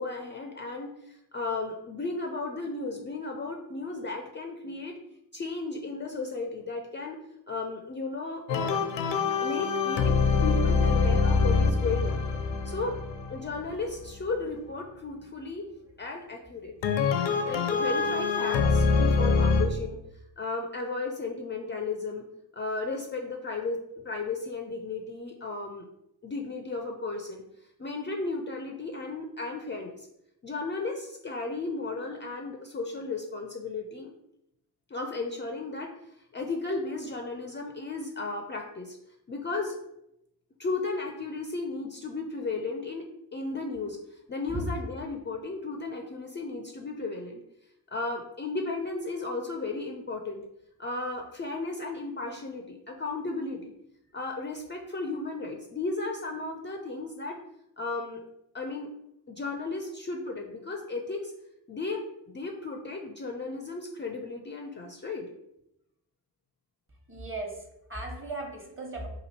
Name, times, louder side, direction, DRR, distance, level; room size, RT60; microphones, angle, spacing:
voice 1, 0.0-4.9 5.3-7.2 7.5-8.8 9.4-10.1 10.4-12.2 12.6-13.0 13.3-15.7 16.0-17.0 17.4-20.0 20.4-22.3 22.5-23.8 24.0-25.9 26.2-27.4 27.8-30.1 30.4-34.1 34.9-39.0 39.3-39.8 40.6-47.4 47.9-50.4 50.8-53.7 54.1-57.4 57.8-58.2 58.5-58.9 59.3-61.3 61.7-65.3, left 3 dB, 25° left, 3 dB, 0.5 m, -34 dB
sound 1, 8.5-14.2 16.8-19.6, left 4 dB, 65° left, 0.6 m, -25 dB
voice 2, 67.1-69.1, right 2 dB, 25° right, 2 dB, 1.2 m, -37 dB
3.0 x 2.5 x 4.2 m, 0.83 s
hypercardioid pair, 40°, 48 cm